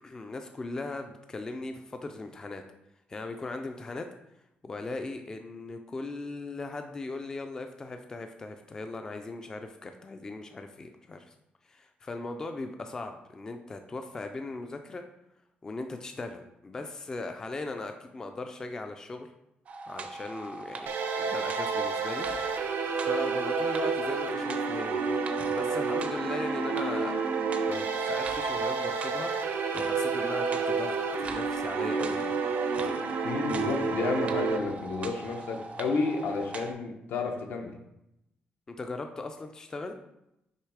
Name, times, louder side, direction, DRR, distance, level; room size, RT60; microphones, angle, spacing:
voice 1, 0.0-2.6 3.1-4.1 4.6-11.3 11.7-15.0 15.6-19.3 19.9-22.3 22.7-25.2 25.5-27.2 27.5-29.3 29.7-32.3 38.7-40.0, left 3 dB, 20° left, 6 dB, 0.3 m, -38 dB
sound 1, 19.7-36.7, right 3 dB, 40° right, 0.5 m, -41 dB
sound 2, 20.9-34.6, right 5 dB, 80° right, 0.6 m, -30 dB
voice 2, 33.2-37.7, left 4 dB, 75° left, 3 dB, 0.9 m, -31 dB
6.5 x 3.1 x 4.8 m, 0.85 s
wide cardioid pair, 180°, 3 cm